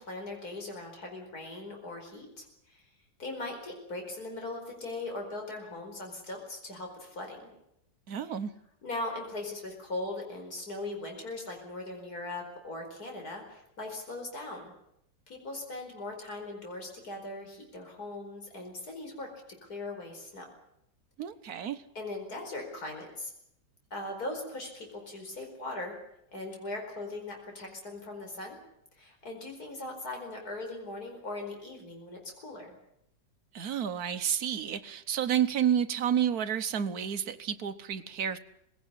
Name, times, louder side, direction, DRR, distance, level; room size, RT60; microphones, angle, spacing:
voice 1, 0.0-2.9 3.2-7.5 8.2-8.3 8.8-14.7 15.3-19.3 19.6-20.5 22.0-23.3 23.9-26.0 26.3-28.6 29.0-32.7, left 2 dB, 55° left, 2 dB, 5.2 m, -39 dB
voice 2, 8.1-8.5 21.2-21.8 33.5-38.4, right 9 dB, 60° right, 10 dB, 1.4 m, -30 dB
20.5 x 17.0 x 9.9 m, 0.78 s
omnidirectional pair, 2.0 m